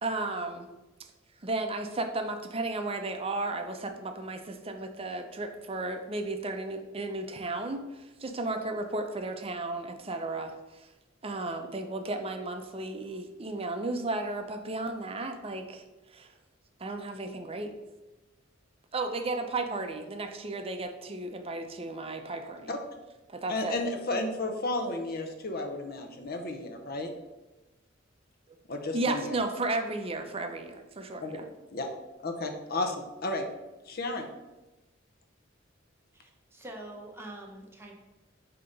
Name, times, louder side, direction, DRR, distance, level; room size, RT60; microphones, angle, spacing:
voice 1, 0.0-0.7 1.4-10.9 11.2-15.8 16.1-16.3 16.8-17.7 18.9-22.7 23.3-23.7 28.9-31.4, right 2 dB, 30° right, 6 dB, 0.6 m, -34 dB
voice 2, 23.5-27.1 28.7-29.4 31.2-31.9 32.2-33.5 33.8-34.3, left 2 dB, 50° left, 5 dB, 0.8 m, -33 dB
voice 3, 36.1-37.9, right 1 dB, 10° right, 0 dB, 0.9 m, -45 dB
7.2 x 2.9 x 5.2 m, 1.1 s
head